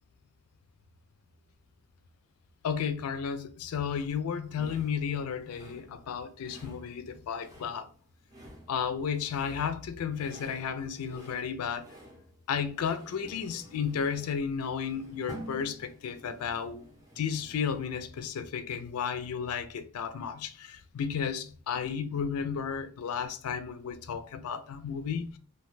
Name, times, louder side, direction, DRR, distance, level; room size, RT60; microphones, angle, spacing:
voice 1, 2.6-7.9 8.7-11.9 12.5-16.8 17.2-25.4, left 7 dB, 75° left, 0.4 m, -33 dB
sound 1, 4.5-18.0, equal, 15° right, 0.6 m, -51 dB
2.8 x 2.1 x 3.0 m
head